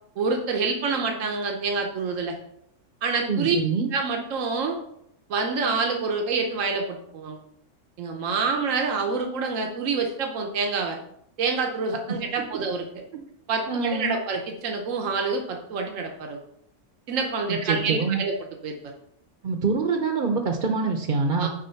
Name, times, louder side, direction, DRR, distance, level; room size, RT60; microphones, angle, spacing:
voice 1, 0.2-2.3 3.0-3.6 3.9-4.8 5.3-7.4 8.0-11.0 11.4-12.8 13.5-16.4 17.1-18.4 18.6-18.8 21.4-21.5, right 4 dB, 85° right, 3 dB, 1.2 m, -27 dB
voice 2, 3.3-3.9 13.1-13.2 13.7-14.2 17.5-18.2 19.4-21.5, right 4 dB, 50° right, 4 dB, 0.8 m, -25 dB
6.3 x 5.0 x 5.7 m, 0.75 s
omnidirectional pair, 1.3 m